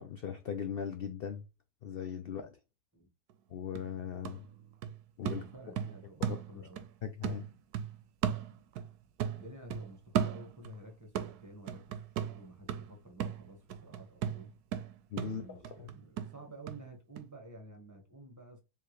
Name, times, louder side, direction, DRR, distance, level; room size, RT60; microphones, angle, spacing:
voice 1, 0.0-1.5 1.8-2.5 3.5-4.4 5.2-5.4 6.3-6.4 7.0-7.5 15.1-15.9, left 8 dB, 90° left, 0.5 m, -39 dB
sound 1, 3.3-3.4 3.8-6.9 7.2-8.9 9.2-10.8 11.2-16.8 17.2-17.3, right 9 dB, 85° right, 1.1 m, -37 dB
voice 2, 5.3-6.8 9.3-14.5 15.2-18.6, right 1 dB, 10° right, 1.2 m, -51 dB
4.5 x 3.6 x 3.1 m
omnidirectional pair, 1.6 m